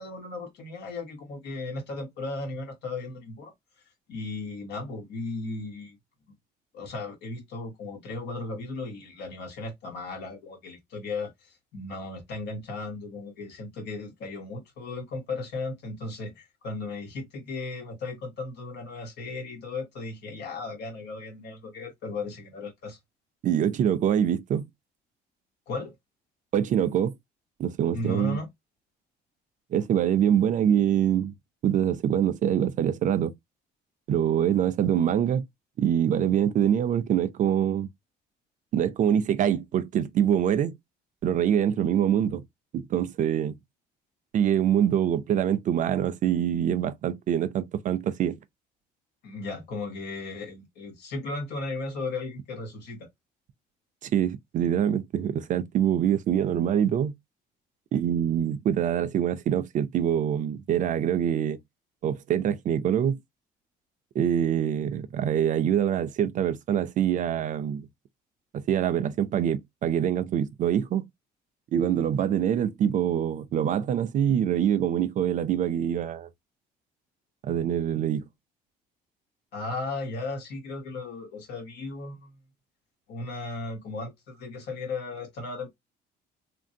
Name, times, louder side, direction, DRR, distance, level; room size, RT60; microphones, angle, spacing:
voice 1, 0.0-3.5 4.1-6.0 6.7-23.0 25.7-26.0 27.9-28.5 49.2-53.1 79.5-82.4 83.1-85.7, left 3 dB, 80° left, 1.3 m, -36 dB
voice 2, 23.4-24.7 26.5-27.1 27.6-28.4 29.7-31.3 31.6-33.3 34.1-35.4 35.8-37.9 38.7-40.7 41.2-42.4 42.7-43.6 44.3-48.4 54.0-57.1 57.9-61.6 62.0-63.2 64.1-67.9 68.5-71.1 71.7-76.3 77.4-78.3, right 9 dB, 50° right, 0.5 m, -25 dB
3.0 x 2.6 x 2.6 m
cardioid pair, 110°, 17 cm